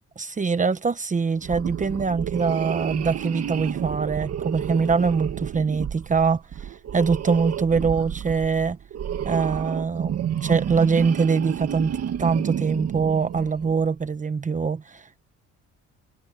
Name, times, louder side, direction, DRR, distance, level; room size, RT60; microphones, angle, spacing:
voice 1, 0.2-8.8 9.2-15.2, right 5 dB, 25° right, 1.1 m, -23 dB
sound 1, 1.4-13.9, right 9 dB, 55° right, 2.2 m, -31 dB
cardioid pair, 125°, 31 cm